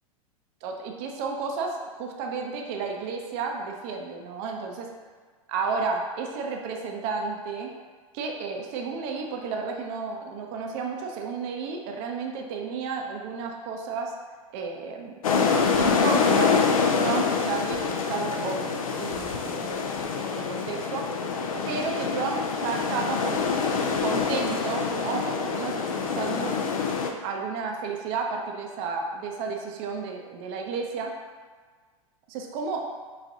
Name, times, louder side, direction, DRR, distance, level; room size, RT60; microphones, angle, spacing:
voice 1, 0.6-4.9 5.5-7.7 8.1-14.1 14.5-15.2 15.7-21.1 21.7-26.5 27.2-31.1 32.3-32.8, right 4 dB, 45° right, 1 dB, 0.5 m, -32 dB
sound 1, 15.2-27.1, left 5 dB, 75° left, 0.4 m, -26 dB
4.8 x 2.4 x 2.5 m, 1.5 s
figure-of-eight pair, 95°, 18 cm